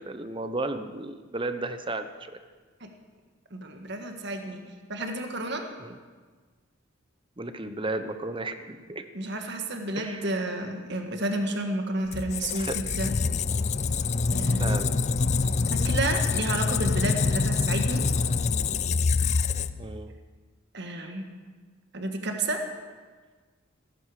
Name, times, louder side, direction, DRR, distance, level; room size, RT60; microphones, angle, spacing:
voice 1, 0.0-2.4 5.8-5.9 7.4-9.0 10.0-10.3 12.6-12.8 14.6-15.1 19.8-20.1, right 2 dB, 25° right, 10 dB, 0.8 m, -34 dB
voice 2, 3.5-4.6 4.9-5.7 9.1-13.1 14.3-14.8 15.7-18.0 20.7-21.3 21.9-22.6, right 2 dB, 55° right, 4 dB, 1.5 m, -31 dB
Squeak, 12.1-20.0, left 4 dB, 35° left, 0.4 m, -26 dB
17.0 x 14.5 x 4.9 m, 1.4 s
head